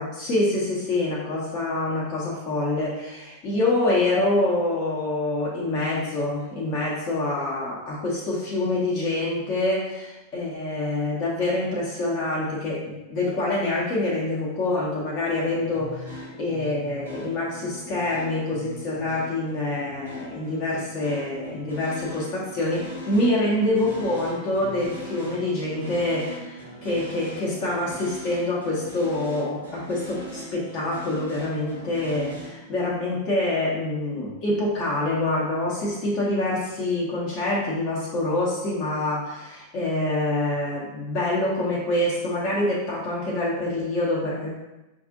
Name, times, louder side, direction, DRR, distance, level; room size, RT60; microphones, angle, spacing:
voice 1, 0.0-44.6, left 2 dB, 40° left, -5 dB, 0.9 m, -26 dB
sound 1, 15.2-32.5, equal, 90° right, 1.1 m, -41 dB
5.7 x 2.5 x 2.6 m, 1.0 s
figure-of-eight pair, 90°, 0 cm